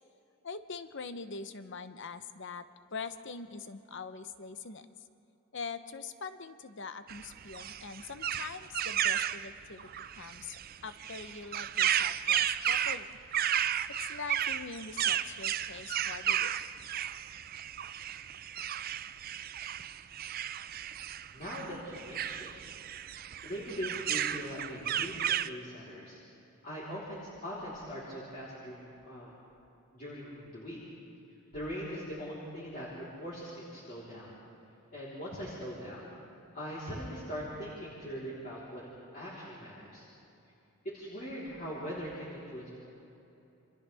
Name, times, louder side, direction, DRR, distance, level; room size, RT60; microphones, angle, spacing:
voice 1, 0.4-2.7 2.9-4.8 5.5-9.9 10.2-13.1 14.1-16.6, left 4 dB, 55° left, 10 dB, 0.9 m, -43 dB
sound 1, 7.1-25.5, right 10 dB, 40° right, 0.4 m, -33 dB
voice 2, 21.3-22.5 22.9-23.0 23.4-26.2 26.6-29.3 29.9-30.8 31.5-34.3 34.9-36.1 36.5-40.0 40.8-42.7, equal, 40° left, -9 dB, 3.8 m, -41 dB
29.5 x 25.5 x 3.5 m, 2.9 s
head